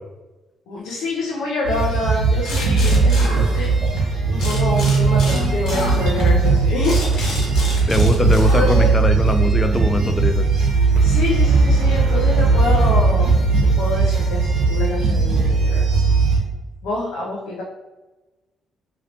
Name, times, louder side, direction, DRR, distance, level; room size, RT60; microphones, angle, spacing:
voice 1, 0.7-3.7 4.3-7.3 8.6-8.9 11.0-15.8 16.8-17.6, left 3 dB, 90° left, -4 dB, 0.6 m, -26 dB
sound 1, 1.6-16.4, right 4 dB, 75° right, 1.0 m, -18 dB
sound 2, 2.4-4.0 4.4-9.1, left 1 dB, 70° left, 1.2 m, -30 dB
voice 2, 7.9-10.4, left 1 dB, 20° left, 8 dB, 0.3 m, -21 dB
sound 3, 11.0-14.0, left 1 dB, 55° right, 0.5 m, -24 dB
2.9 x 2.8 x 3.0 m, 1.1 s
cardioid pair, 90°, 0 cm